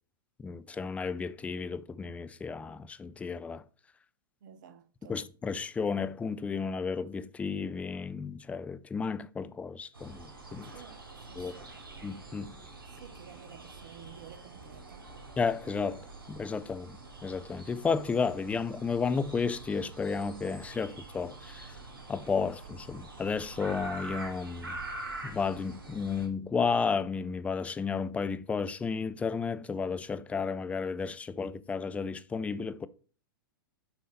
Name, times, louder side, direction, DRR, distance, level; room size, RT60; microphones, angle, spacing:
voice 1, 0.4-3.6 5.1-10.7 11.4-11.5 12.0-12.6 15.4-21.8 22.1-24.8 25.2-32.9, left 5 dB, 10° left, 0.4 m, -33 dB
voice 2, 4.4-5.3 10.6-11.8 12.9-15.1, right 9 dB, 60° right, 0.9 m, -53 dB
sound 1, 9.9-26.3, right 2 dB, 80° right, 2.6 m, -45 dB
6.9 x 5.4 x 4.0 m
figure-of-eight pair, 105°, 12 cm